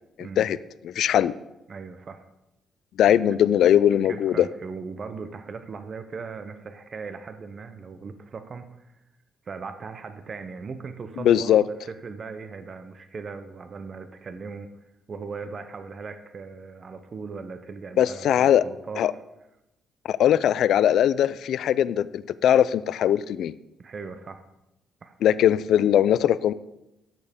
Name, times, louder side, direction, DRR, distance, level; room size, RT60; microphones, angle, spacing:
voice 1, 0.2-0.6 0.8-1.3 3.0-4.5 11.2-11.6 18.0-18.6 19.0-19.1 20.1-23.6 25.2-26.5, left 10 dB, 75° left, 17 dB, 0.3 m, -20 dB
voice 2, 1.7-2.2 3.3-3.5 3.9-8.9 9.4-14.7 15.1-19.2 23.8-24.4 25.0-25.1 25.8-26.1, right 5 dB, 45° right, 9 dB, 0.6 m, -38 dB
13.0 x 6.7 x 3.6 m, 0.93 s
cardioid pair, 90°, 0 cm